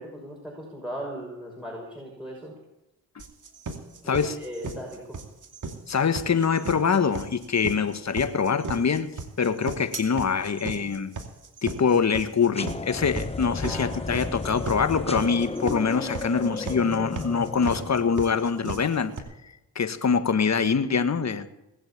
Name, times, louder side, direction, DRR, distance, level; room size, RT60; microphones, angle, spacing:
voice 1, 0.0-2.5 4.0-5.2 13.6-14.0, equal, ahead, -3 dB, 6.2 m, -38 dB
sound 1, 3.2-19.2, right 4 dB, 50° right, 2.6 m, -36 dB
voice 2, 5.9-9.1 9.4-11.2 11.6-19.1 19.7-21.5, left 6 dB, 40° left, 11 dB, 1.6 m, -24 dB
sound 2, 12.5-18.5, left 3 dB, 15° left, 0.9 m, -34 dB
20.0 x 7.7 x 8.7 m, 0.92 s
supercardioid pair, 55°, 40 cm